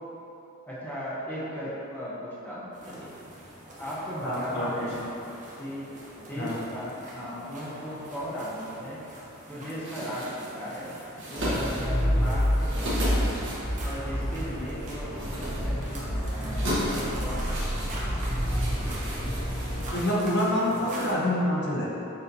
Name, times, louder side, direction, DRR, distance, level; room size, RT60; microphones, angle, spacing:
voice 1, 0.6-3.1 3.8-5.0 5.6-5.9 6.2-9.0 9.5-11.0 11.3-13.4 13.8-17.6, equal, 10° left, -9 dB, 0.7 m, -37 dB
sound 1, 2.7-21.1, right 1 dB, 35° right, 0.7 m, -44 dB
voice 2, 4.2-4.7 5.0-5.1 6.4-6.7 19.9-21.9, left 1 dB, 55° left, -5 dB, 0.7 m, -27 dB
sound 2, 9.8-20.7, equal, 60° right, 1.1 m, -36 dB
sound 3, 11.4-19.9, equal, 30° left, 1.1 m, -29 dB
6.6 x 2.8 x 2.6 m, 3.0 s
head